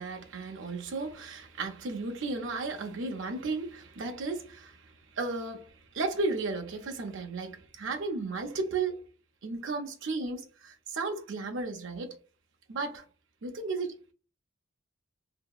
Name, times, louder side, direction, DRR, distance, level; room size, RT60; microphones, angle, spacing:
voice 1, 0.0-4.8 5.1-9.0 9.4-12.1 12.7-13.0 13.4-14.0, right 3 dB, 60° right, 0.6 m, -34 dB
2.8 x 2.7 x 2.3 m
head